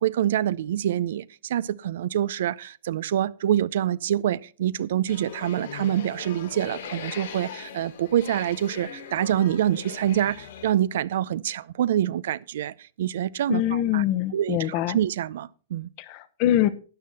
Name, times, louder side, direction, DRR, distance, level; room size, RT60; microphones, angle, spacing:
voice 1, 0.0-14.0 14.3-15.9, right 11 dB, 65° right, 0.5 m, -26 dB
sound 1, 5.1-10.7, left 8 dB, 70° left, 3.6 m, -40 dB
voice 2, 13.5-15.0 16.0-16.7, left 12 dB, 40° left, 1.0 m, -24 dB
12.5 x 9.6 x 4.1 m
supercardioid pair, 160°, 0 cm